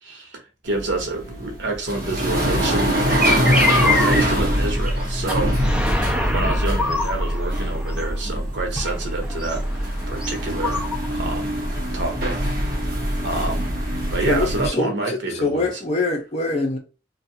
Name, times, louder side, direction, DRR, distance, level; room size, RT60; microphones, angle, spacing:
voice 1, 0.0-10.8 11.1-11.6 11.9-13.0 13.2-13.7 14.1-15.7, right 2 dB, 85° right, 0.9 m, -28 dB
sound 1, 0.7-14.7, equal, 50° right, 0.8 m, -24 dB
sound 2, 3.1-4.3 4.6-5.0 5.3-5.4 5.6-8.2 8.8-11.1, left 2 dB, 5° right, 0.4 m, -25 dB
voice 2, 14.3-16.8, left 2 dB, 40° left, 0.7 m, -24 dB
2.6 x 2.3 x 2.7 m
head